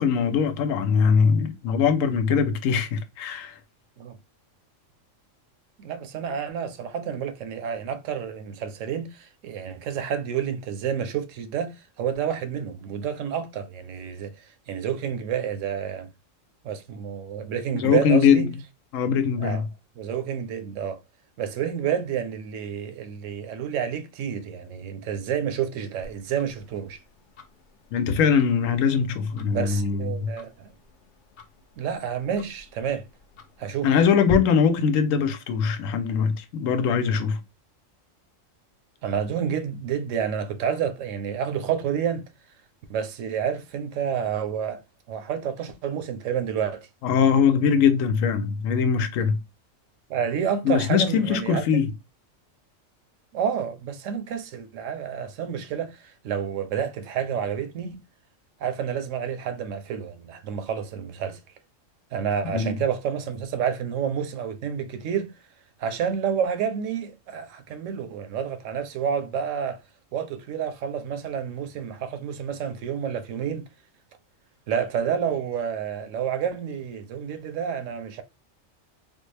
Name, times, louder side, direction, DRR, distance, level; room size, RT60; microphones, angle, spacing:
voice 1, 0.0-3.6 17.7-18.5 18.9-19.6 27.9-30.3 33.8-37.4 47.0-49.4 50.6-51.9 62.5-62.7, left 6 dB, 85° left, 1.0 m, -21 dB
voice 2, 5.8-16.1 16.6-18.5 19.4-19.6 20.0-21.0 21.4-27.0 29.5-30.7 31.8-33.0 33.6-33.9 39.0-42.2 42.9-44.8 45.1-46.9 50.1-51.6 53.3-58.0 58.6-61.4 62.1-65.3 65.8-69.8 70.1-73.6 74.7-78.2, right 8 dB, 75° right, 1.0 m, -29 dB
Tick-tock, 26.0-34.3, left 9 dB, 60° left, 0.5 m, -44 dB
3.6 x 2.1 x 3.2 m
omnidirectional pair, 1.3 m